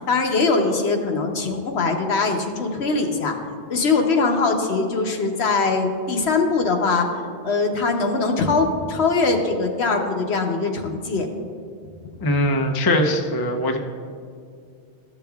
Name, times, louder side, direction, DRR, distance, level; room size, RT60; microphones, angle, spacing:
voice 1, 0.1-3.3 3.7-7.1 7.4-11.3 12.2-12.3, left 4 dB, 70° left, 3 dB, 1.0 m, -22 dB
voice 2, 12.2-13.8, left 1 dB, 30° left, 3 dB, 0.4 m, -21 dB
13.0 x 7.0 x 2.3 m, 2.3 s
omnidirectional pair, 1.2 m